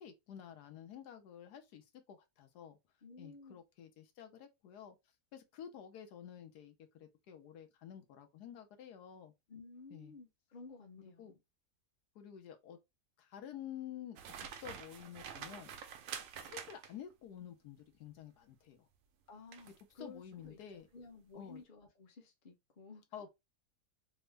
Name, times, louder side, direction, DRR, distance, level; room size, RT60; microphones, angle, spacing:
voice 1, 0.0-2.8 3.2-5.0 5.3-9.3 9.9-10.1 11.2-11.3 12.1-12.8 13.2-15.7 16.4-18.9 20.0-20.9 21.3-21.6 23.1-23.3, left 9 dB, 80° left, 1.2 m, -50 dB
voice 2, 3.0-3.6 9.5-11.4 19.3-23.0, left 3 dB, 40° left, 0.8 m, -54 dB
sound 1, 14.2-17.1 19.5-19.8 20.3-20.5, right 7 dB, 65° right, 0.8 m, -47 dB
3.5 x 2.1 x 3.1 m
omnidirectional pair, 1.7 m